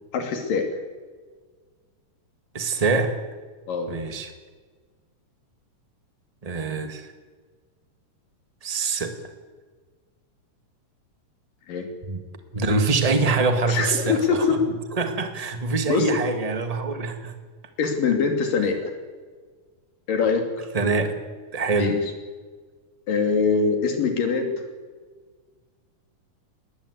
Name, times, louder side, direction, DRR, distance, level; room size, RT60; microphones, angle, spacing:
voice 1, 0.1-0.6 3.7-3.9 11.7-11.9 13.7-14.6 15.9-16.1 17.8-18.9 20.1-20.7 21.8-22.0 23.1-24.5, left 5 dB, 80° left, 4 dB, 4.3 m, -23 dB
voice 2, 2.5-3.2 3.9-4.3 6.4-7.1 8.6-9.1 12.0-12.2 12.5-14.5 15.0-17.3 20.7-21.1 21.5-22.0, right 3 dB, 25° right, 7 dB, 0.8 m, -24 dB
20.5 x 19.5 x 8.3 m, 1.5 s
omnidirectional pair, 3.8 m